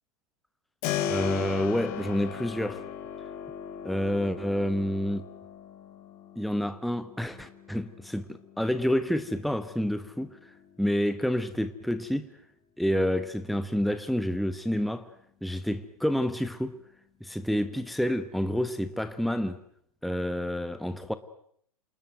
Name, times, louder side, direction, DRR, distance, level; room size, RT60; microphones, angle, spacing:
Keyboard (musical), 0.8-11.5, left 9 dB, 40° left, 4.6 m, -38 dB
voice 1, 1.1-2.8 3.8-5.3 6.4-10.5 10.8-12.3 12.8-15.1 15.4-16.8 17.2-19.6 20.0-21.1, equal, ahead, 1.2 m, -29 dB
28.0 x 20.0 x 9.2 m
figure-of-eight pair, 105°, 19 cm